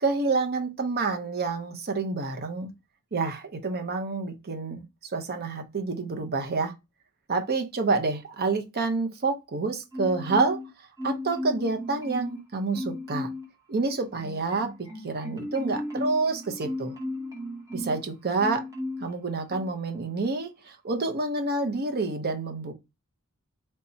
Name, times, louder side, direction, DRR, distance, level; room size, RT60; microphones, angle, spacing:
voice 1, 0.0-2.7 3.1-6.7 7.3-10.6 11.0-13.3 13.7-16.9 17.7-18.6 19.0-22.7, right 3 dB, 45° right, 0.7 m, -28 dB
Marimba xylophone, 9.9-10.7 11.0-12.4 12.7-13.5 13.8-18.0 18.4-19.1 19.5-19.7, left 1 dB, 15° right, 1.0 m, -35 dB
3.4 x 2.7 x 4.2 m
head